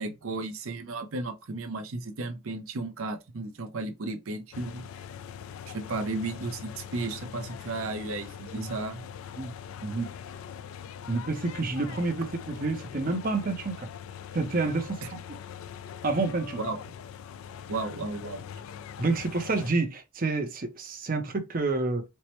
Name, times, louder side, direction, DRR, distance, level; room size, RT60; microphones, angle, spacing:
voice 1, 0.0-4.8 5.7-9.0 15.0-15.1 16.6-16.8 17.7-18.5, right 3 dB, 85° right, 0.6 m, -34 dB
sound 1, 4.5-19.7, left 8 dB, 80° left, 0.3 m, -42 dB
voice 2, 11.1-13.9 14.3-15.0 16.0-16.6 19.0-22.0, right 3 dB, 40° right, 0.6 m, -28 dB
4.3 x 2.1 x 2.9 m
head